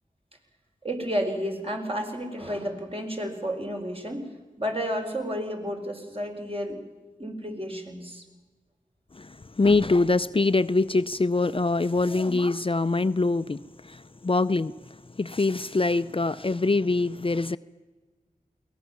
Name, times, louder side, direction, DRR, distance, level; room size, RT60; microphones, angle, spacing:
voice 1, 0.8-4.3 4.6-6.8 7.2-8.2, equal, 40° right, 4.7 m, -31 dB
voice 2, 9.1-14.8 15.2-17.6, left 3 dB, 35° left, 0.6 m, -24 dB
22.0 x 18.5 x 7.2 m
wide cardioid pair, 45°, 15 cm